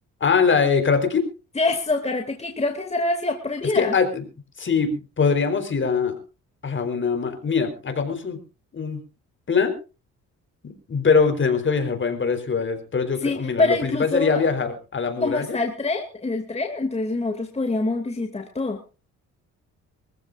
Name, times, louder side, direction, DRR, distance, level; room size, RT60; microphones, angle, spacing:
voice 1, 0.2-1.3 3.8-4.2 4.6-6.1 6.6-8.4 8.7-9.0 9.5-9.8 10.6-15.6, left 5 dB, 40° left, 7 dB, 4.1 m, -22 dB
voice 2, 1.5-4.0 13.2-14.4 15.2-18.8, left 2 dB, 20° left, 4 dB, 2.6 m, -25 dB
25.0 x 15.0 x 2.6 m, 0.33 s
cardioid pair, 90°, 30 cm